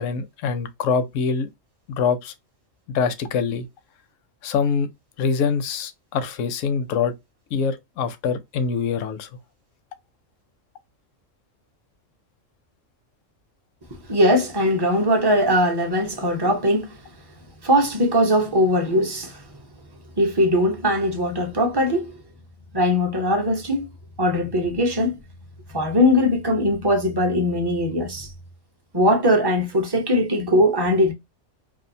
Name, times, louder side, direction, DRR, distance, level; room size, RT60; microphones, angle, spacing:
voice 1, 0.0-1.5 1.9-2.3 2.9-3.7 4.4-4.9 5.2-7.1 7.5-9.3, left 6 dB, 75° left, 0.9 m, -24 dB
voice 2, 14.1-16.9 17.6-19.4 20.2-22.1 22.7-23.9 24.2-25.2 25.7-28.3 28.9-31.1, equal, 30° right, 0.4 m, -20 dB
2.6 x 2.3 x 2.6 m
omnidirectional pair, 1.3 m